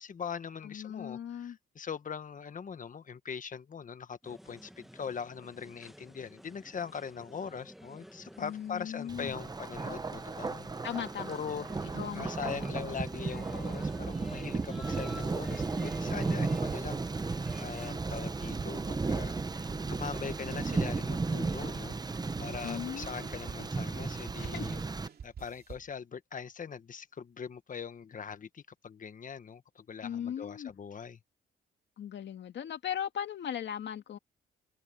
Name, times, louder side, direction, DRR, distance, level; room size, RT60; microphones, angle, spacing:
voice 1, 0.0-10.9 11.3-11.9 12.1-24.8 25.2-31.2, left 6 dB, 40° left, 1.4 m, -41 dB
voice 2, 0.6-1.6 8.4-9.4 10.8-13.0 22.6-23.3 24.5-24.8 30.0-30.7 32.0-34.2, left 9 dB, 65° left, 2.4 m, -39 dB
sound 1, 4.2-17.9, equal, ahead, 1.6 m, -51 dB
Thunder, 9.1-25.1, right 3 dB, 20° right, 0.9 m, -35 dB
sound 2, 14.7-24.7 25.1-25.9, right 7 dB, 50° right, 2.7 m, -49 dB
cardioid pair, 90°, 20 cm